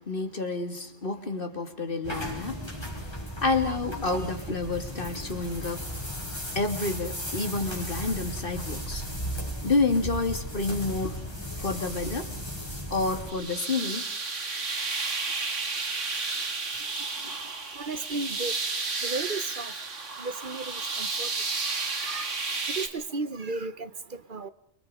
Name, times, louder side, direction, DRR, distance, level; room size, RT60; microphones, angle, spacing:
voice 1, 0.0-2.8 3.4-5.8 6.5-9.0 9.6-11.2 11.6-12.3 12.9-14.1 17.2-17.4, left 3 dB, 50° left, 6 dB, 2.9 m, -29 dB
sound 1, 2.0-13.3, equal, 20° left, 5.6 m, -36 dB
sound 2, 13.3-22.9, right 4 dB, 90° right, 2.5 m, -32 dB
voice 2, 17.8-18.5 19.0-19.7 20.2-21.3 21.7-22.2 22.8-23.9 24.3-24.5, right 3 dB, 45° right, 14 dB, 1.2 m, -34 dB
29.5 x 24.5 x 5.1 m, 0.68 s
omnidirectional pair, 1.2 m